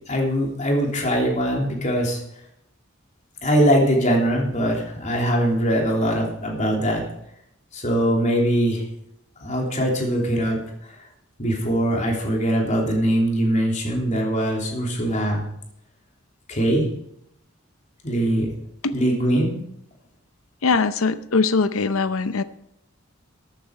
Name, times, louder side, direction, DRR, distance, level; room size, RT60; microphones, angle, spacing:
voice 1, 0.1-2.2 3.4-7.0 7.7-8.8 9.4-10.6 10.9-11.0 11.4-15.4 16.5-16.9 18.0-18.5 18.9-19.5, equal, 35° left, -1 dB, 3.2 m, -22 dB
voice 2, 20.6-22.4, left 4 dB, 80° left, 13 dB, 0.7 m, -21 dB
14.0 x 9.1 x 4.8 m, 0.77 s
head